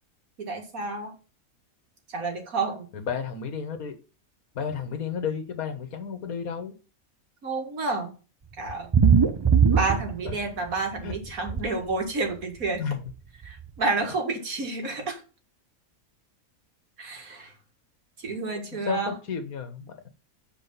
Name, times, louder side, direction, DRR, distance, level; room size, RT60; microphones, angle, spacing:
voice 1, 0.4-1.1 2.1-2.9 7.4-8.1 8.6-8.9 9.7-12.8 13.4-15.2 17.0-17.5 18.2-19.1, right 3 dB, 75° right, 3 dB, 2.3 m, -30 dB
voice 2, 2.9-3.9 4.5-6.7 10.2-10.3 11.0-11.2 12.8-13.0 18.8-19.9, left 6 dB, 80° left, 8 dB, 1.7 m, -32 dB
sound 1, 8.7-10.7 11.0-11.6 12.7-12.8 13.1-13.2 13.4-13.5, right 6 dB, 35° right, 0.4 m, -20 dB
7.7 x 4.6 x 5.5 m, 0.34 s
omnidirectional pair, 1.5 m